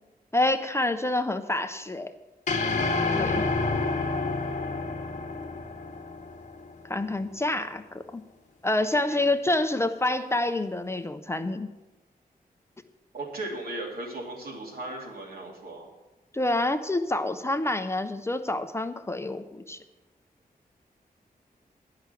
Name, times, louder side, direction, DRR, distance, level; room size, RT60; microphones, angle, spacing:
voice 1, 0.3-2.1 3.1-3.4 6.9-8.2 8.6-11.7 16.3-19.8, left 2 dB, 15° left, 8 dB, 0.4 m, -27 dB
sound 1, 2.5-6.9, left 3 dB, 50° left, 1.0 m, -29 dB
voice 2, 8.9-9.2 13.1-15.9, right 2 dB, 75° right, -2 dB, 2.6 m, -37 dB
10.5 x 5.7 x 8.1 m, 1.1 s
wide cardioid pair, 170°, 16 cm